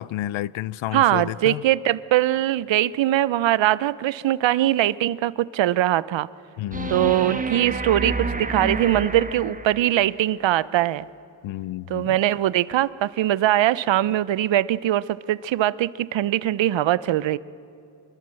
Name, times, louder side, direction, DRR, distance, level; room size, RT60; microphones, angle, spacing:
voice 1, 0.0-1.6 6.6-7.2 11.4-12.1, left 14 dB, 85° left, 0.6 m, -30 dB
voice 2, 0.9-6.3 6.9-11.1 11.9-17.4, right 13 dB, 70° right, 0.7 m, -21 dB
sound 1, 6.7-10.1 12.7-12.8, right 3 dB, 15° right, 1.3 m, -29 dB
24.5 x 21.5 x 7.7 m
cardioid pair, 90°, 46 cm